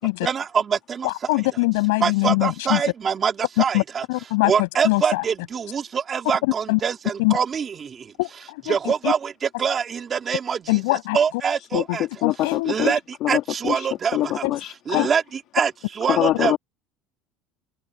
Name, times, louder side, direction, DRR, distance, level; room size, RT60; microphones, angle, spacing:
voice 1, 0.2-1.1 2.0-4.0 4.4-8.1 8.7-10.6 11.1-12.1 12.7-13.0 13.3-14.4 14.9-15.7 16.0-16.5, right 7 dB, 30° right, 2.8 m, -24 dB
voice 2, 1.0-2.8 3.6-5.2 6.4-6.8 7.2-7.4 8.2-8.8 9.0-9.1 10.7-11.2 11.9-12.9 14.4-14.5 14.9-15.1, left 25 dB, 90° left, 7.9 m, -23 dB
voice 3, 12.2-12.9 13.2-15.1 16.1-16.6, left 14 dB, 55° left, 3.7 m, -24 dB
cardioid pair, 135°, 0 cm